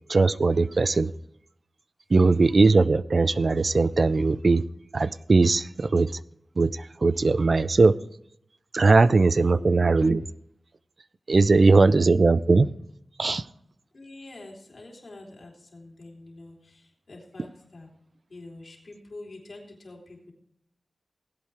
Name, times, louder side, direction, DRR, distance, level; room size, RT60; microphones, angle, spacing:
voice 1, 0.1-1.1 2.1-4.6 4.9-6.1 6.6-7.9 8.7-10.2 11.3-12.7 13.2-13.4, right 3 dB, 55° right, 0.4 m, -20 dB
voice 2, 9.4-9.7 11.3-11.8 13.9-17.9 18.3-20.3, left 2 dB, 60° left, 3.3 m, -46 dB
18.5 x 8.3 x 3.4 m
wide cardioid pair, 75°, 0 cm